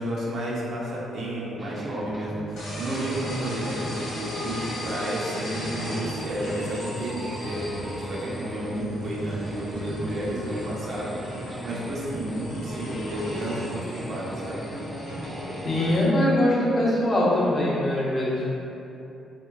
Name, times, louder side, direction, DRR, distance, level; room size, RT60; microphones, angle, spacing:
voice 1, 0.0-11.2 11.6-14.7, right 1 dB, 60° right, -6 dB, 0.7 m, -31 dB
sound 1, 1.6-16.0, right 2 dB, 15° right, 0.3 m, -38 dB
sound 2, 2.6-16.0, left 1 dB, 90° left, 1.1 m, -37 dB
voice 2, 15.6-18.5, left 1 dB, 35° left, -8 dB, 1.0 m, -22 dB
3.7 x 2.8 x 2.4 m, 2.9 s
cardioid pair, 90°, 0 cm